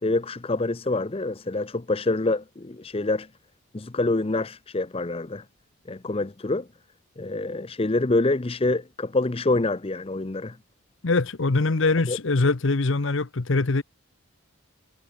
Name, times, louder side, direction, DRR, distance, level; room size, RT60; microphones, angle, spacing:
voice 1, 0.0-3.3 3.7-5.4 5.9-6.7 7.2-10.6 12.1-12.2, left 2 dB, 25° left, 0.6 m, -26 dB
voice 2, 11.0-13.8, left 3 dB, 60° left, 0.9 m, -23 dB
head